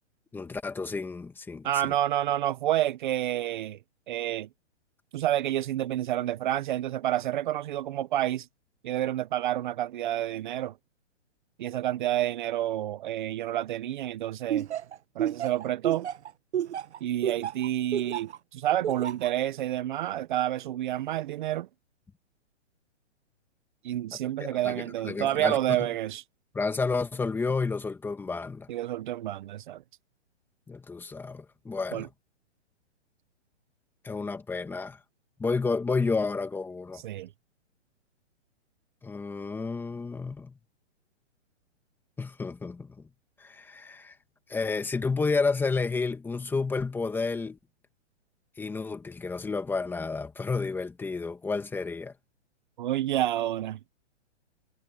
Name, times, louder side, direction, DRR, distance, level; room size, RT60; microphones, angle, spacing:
voice 1, 0.3-1.7 24.4-25.8 26.5-28.7 30.7-32.1 34.0-35.0 35.4-37.0 39.0-40.5 42.2-43.0 43.4-44.1 44.5-47.6 48.6-52.1, left 4 dB, 5° left, 2.1 m, -31 dB
voice 2, 1.6-3.8 4.1-4.5 5.1-8.5 8.8-10.7 11.6-14.7 15.1-16.1 17.0-21.7 23.8-26.2 28.7-29.8 31.9-32.1 36.9-37.3 52.8-53.8, right 13 dB, 40° right, 1.1 m, -29 dB
Laughter, 14.5-18.4 18.8-19.3, right 10 dB, 65° right, 1.6 m, -30 dB
hypercardioid pair, 155°, 36 cm